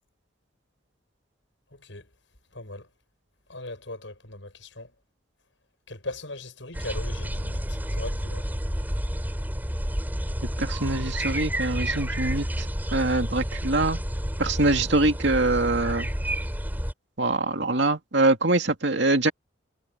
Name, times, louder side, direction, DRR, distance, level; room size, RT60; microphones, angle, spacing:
voice 1, 1.7-2.1 2.5-2.9 3.5-4.9 5.9-8.4, left 2 dB, 70° left, 7.5 m, -39 dB
sound 1, 6.7-16.9, equal, 10° right, 4.0 m, -30 dB
voice 2, 10.6-12.7 12.9-14.0 14.4-16.1 17.2-19.3, right 2 dB, 65° right, 2.3 m, -24 dB
head